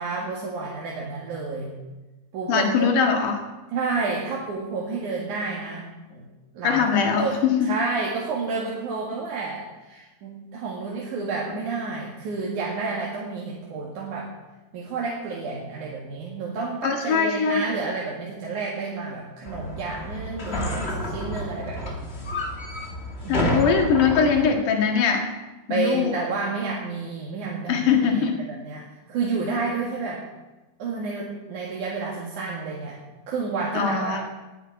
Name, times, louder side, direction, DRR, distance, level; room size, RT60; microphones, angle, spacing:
voice 1, 0.0-1.7 2.3-2.9 3.7-6.3 6.5-7.4 7.6-14.3 14.7-22.0 23.2-23.7 25.7-30.2 30.8-33.0 33.3-34.2, right 4 dB, 65° right, -3 dB, 3.3 m, -30 dB
voice 2, 2.5-3.5 6.6-7.7 16.8-17.6 23.3-25.3 25.7-26.1 27.7-28.4 33.7-34.2, left 6 dB, 70° left, 3 dB, 3.3 m, -21 dB
sound 1, 19.5-24.5, equal, 30° left, 1.2 m, -30 dB
11.0 x 9.5 x 9.6 m, 1.1 s
omnidirectional pair, 3.9 m